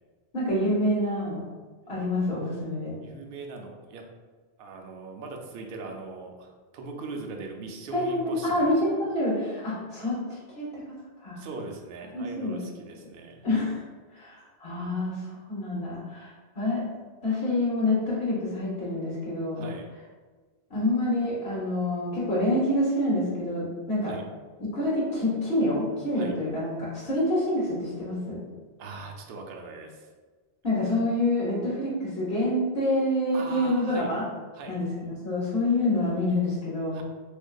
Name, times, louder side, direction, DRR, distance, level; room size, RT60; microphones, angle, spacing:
voice 1, 0.3-1.4 1.9-3.0 7.9-10.9 11.2-11.4 12.1-12.6 13.4-13.8 14.1-16.8 17.2-19.7 20.7-24.1 24.6-28.4 30.6-34.2 34.7-37.0, left 1 dB, 55° left, -7 dB, 1.2 m, -27 dB
voice 2, 3.0-4.0 4.6-8.8 11.4-13.5 19.6-19.9 24.0-24.2 26.2-26.3 28.8-30.1 33.3-34.1 34.5-34.8 36.9-37.0, right 3 dB, 60° right, 2 dB, 0.7 m, -40 dB
4.4 x 2.5 x 2.2 m, 1.4 s
omnidirectional pair, 1.2 m